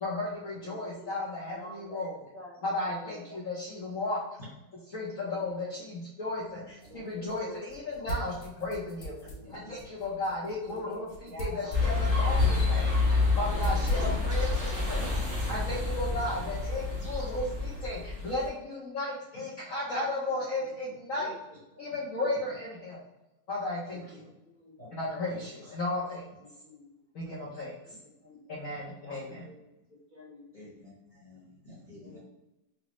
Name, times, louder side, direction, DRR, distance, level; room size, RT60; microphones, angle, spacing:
voice 1, 0.0-2.2 2.6-4.2 4.9-9.2 9.5-13.0 13.4-15.1 15.5-21.3 21.8-23.0 23.5-24.3 24.9-26.3 27.1-27.7 28.5-29.4, left 2 dB, 60° left, -6 dB, 0.9 m, -34 dB
voice 2, 0.6-1.1 1.5-3.4 5.2-5.3 6.9-8.2 9.2-9.5 10.7-10.8 11.3-11.8 13.5-14.5 15.1-15.3 20.2-20.4 21.1-21.3 21.7-21.9 24.1-24.7 25.1-25.3 26.6-26.9 28.2-28.4 29.0-29.6 30.1-30.7 32.0-32.2, left 1 dB, 60° right, -6 dB, 2.1 m, -49 dB
sound 1, 6.3-16.2, right 1 dB, 90° left, 1.5 m, -42 dB
voice 3, 6.5-7.1 9.5-9.9 19.3-19.4 23.9-24.2 24.8-24.9 25.3-25.7 29.1-29.3 30.5-32.2, left 1 dB, 30° left, -7 dB, 0.9 m, -51 dB
sound 2, 11.7-18.5, left 3 dB, 20° right, 1.0 m, -28 dB
4.9 x 2.0 x 3.0 m, 0.94 s
omnidirectional pair, 2.0 m